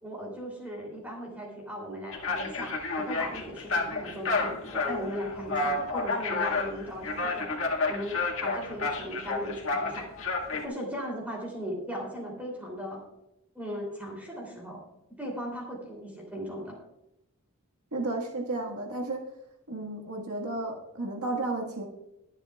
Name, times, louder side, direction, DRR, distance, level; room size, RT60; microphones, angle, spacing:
voice 1, 0.0-7.6 7.9-10.1 10.6-13.0 13.5-14.8 15.1-16.8, equal, 5° right, -2 dB, 3.0 m, -37 dB
sound 1, 2.1-10.7, left 3 dB, 60° left, 1.9 m, -30 dB
voice 2, 17.9-19.2 19.7-21.9, right 2 dB, 85° right, 0 dB, 1.7 m, -33 dB
22.5 x 7.9 x 2.4 m, 0.89 s
head